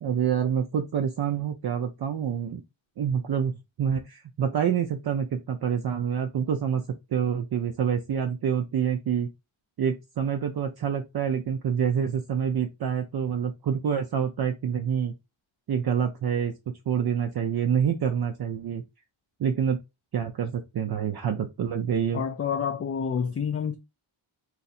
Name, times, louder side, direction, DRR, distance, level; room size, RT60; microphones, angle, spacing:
voice 1, 0.0-2.6 3.0-3.5 3.8-6.8 7.1-9.3 9.8-15.1 15.7-16.5 16.9-18.8 19.4-19.8 20.1-22.2, right 8 dB, 50° right, 0.5 m, -27 dB
voice 2, 22.1-23.8, left 7 dB, 35° left, 0.4 m, -28 dB
2.6 x 2.4 x 4.0 m
wide cardioid pair, 75°, 49 cm